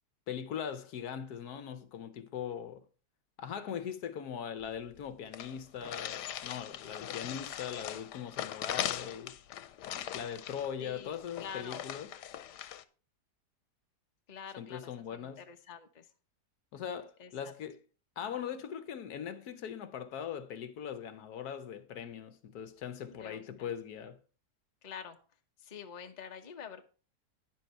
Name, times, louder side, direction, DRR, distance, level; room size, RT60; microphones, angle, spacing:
voice 1, 0.3-2.8 3.4-9.4 10.1-12.1 14.6-15.4 16.7-17.8 18.2-24.2, left 8 dB, 70° left, 1.2 m, -40 dB
sound 1, 4.6-4.7 4.9-5.0 5.3-12.8, left 11 dB, 90° left, 1.3 m, -40 dB
voice 2, 10.8-11.8 14.3-16.1 17.2-17.3 23.1-23.7 24.8-25.2 25.6-26.8, left 7 dB, 35° left, 0.8 m, -47 dB
10.0 x 7.6 x 4.3 m
omnidirectional pair, 1.8 m